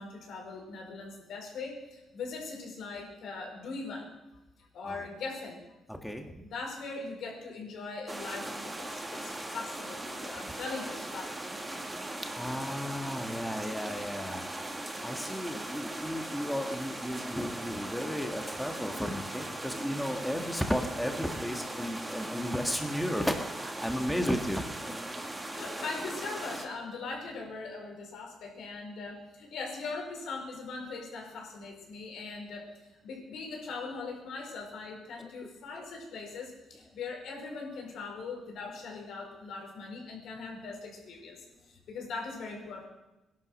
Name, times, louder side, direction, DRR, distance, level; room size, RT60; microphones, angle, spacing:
voice 1, 0.0-4.1 4.7-5.8 6.4-11.7 24.0-24.4 25.5-32.7 33.0-42.9, left 4 dB, 75° left, 1 dB, 5.0 m, -40 dB
voice 2, 5.9-6.3 12.0-14.4 15.0-25.1 35.2-35.3, equal, 5° left, 4 dB, 1.7 m, -34 dB
sound 1, 8.1-26.7, right 1 dB, 15° right, 2.4 m, -39 dB
18.5 x 11.5 x 6.5 m, 1.0 s
cardioid pair, 90°, 0 cm